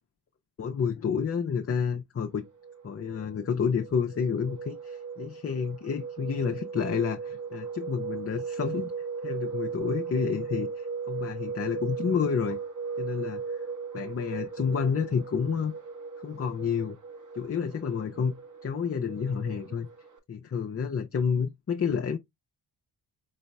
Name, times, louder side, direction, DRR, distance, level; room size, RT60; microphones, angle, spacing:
voice 1, 0.6-2.4 2.8-8.9 9.2-12.6 13.0-13.6 13.9-15.7 16.2-17.0 17.4-18.3 18.6-19.9 20.3-22.2, left 6 dB, 30° left, 0.6 m, -29 dB
sound 1, 2.4-20.2, right 5 dB, 35° right, 1.2 m, -37 dB
4.0 x 4.0 x 2.2 m
cardioid pair, 55°, 50 cm